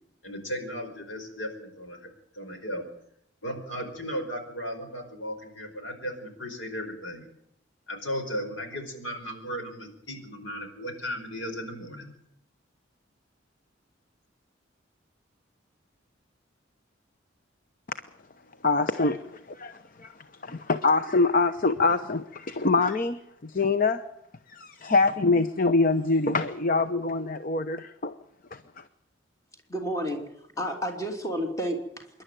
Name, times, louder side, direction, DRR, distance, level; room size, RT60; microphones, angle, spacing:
voice 1, 0.2-2.1 2.3-2.8 3.4-7.3 7.9-12.1, equal, 80° left, 5.0 m, -36 dB
voice 2, 18.6-19.2 19.6-19.7 20.5-23.2 23.5-24.0 24.8-28.1, left 3 dB, 45° left, 0.8 m, -24 dB
voice 3, 29.7-30.2 30.6-32.2, equal, 15° left, 2.9 m, -31 dB
26.5 x 11.5 x 9.1 m
head